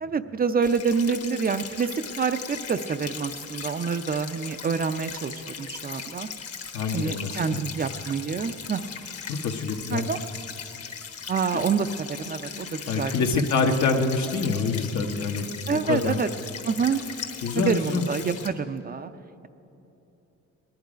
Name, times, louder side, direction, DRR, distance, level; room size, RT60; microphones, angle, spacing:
voice 1, 0.0-6.3 6.9-8.8 9.9-10.2 11.3-13.1 13.6-14.1 15.7-16.3 16.6-17.0 17.5-19.1, right 5 dB, 30° right, 10 dB, 0.5 m, -27 dB
sound 1, 0.6-18.5, left 6 dB, 50° left, 1.3 m, -38 dB
voice 2, 6.7-7.6 9.3-10.1 11.5-11.6 12.9-16.2 17.4-18.0, left 4 dB, 70° left, 4 dB, 1.2 m, -26 dB
19.0 x 10.5 x 5.1 m, 3.0 s
cardioid pair, 90°, 30 cm